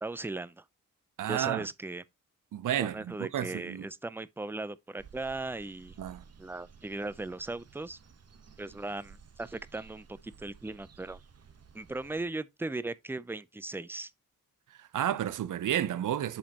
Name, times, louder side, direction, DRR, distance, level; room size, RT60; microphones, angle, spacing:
voice 1, 0.0-0.6 1.2-2.0 2.8-5.9 6.4-8.0 8.6-11.2 11.7-14.1, right 2 dB, 5° right, 0.4 m, -38 dB
voice 2, 1.2-1.7 2.5-3.9 6.0-6.2 14.8-16.4, right 11 dB, 70° right, 0.6 m, -31 dB
sound 1, 5.0-12.2, right 6 dB, 50° right, 1.0 m, -55 dB
7.2 x 5.2 x 2.8 m
wide cardioid pair, 90°, 33 cm